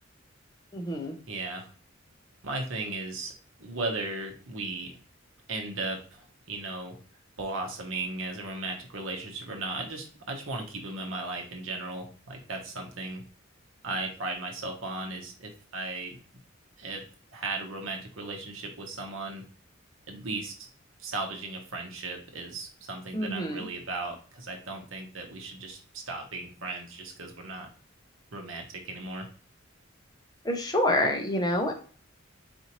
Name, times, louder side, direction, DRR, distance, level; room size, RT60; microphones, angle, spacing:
voice 1, 0.7-1.1 23.1-23.6 30.4-31.7, left 1 dB, 20° left, 3 dB, 0.6 m, -27 dB
voice 2, 1.3-1.7 2.4-3.3 3.6-4.9 5.5-7.0 7.4-13.2 13.8-16.2 16.8-17.0 17.3-19.4 20.1-20.7 21.0-27.7 28.3-29.3, right 2 dB, 75° right, 3 dB, 1.0 m, -36 dB
4.3 x 2.6 x 2.9 m, 0.40 s
head